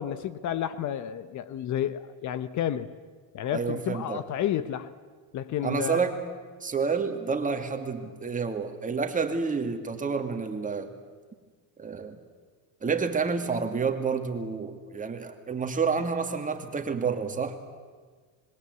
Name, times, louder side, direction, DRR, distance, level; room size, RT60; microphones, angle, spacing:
voice 1, 0.0-2.9 3.3-4.9 5.3-6.0, left 10 dB, 50° left, 14 dB, 1.0 m, -31 dB
voice 2, 3.5-4.2 5.6-6.2 6.6-10.9 11.8-12.2 12.8-17.7, right 5 dB, 20° right, 5 dB, 2.4 m, -29 dB
26.0 x 21.5 x 8.2 m, 1.5 s
cardioid pair, 125°, 38 cm